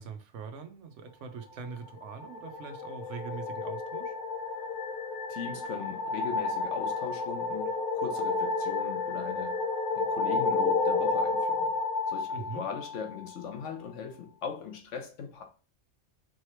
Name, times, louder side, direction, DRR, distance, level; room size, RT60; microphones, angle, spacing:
voice 1, 0.0-4.1 12.3-12.6, right 5 dB, 85° right, 1.1 m, -42 dB
sound 1, 2.0-13.4, left 3 dB, 50° left, 0.7 m, -31 dB
voice 2, 5.3-9.7 9.9-11.7 12.1-15.4, left 6 dB, 85° left, 1.2 m, -39 dB
4.8 x 3.1 x 3.1 m
omnidirectional pair, 1.2 m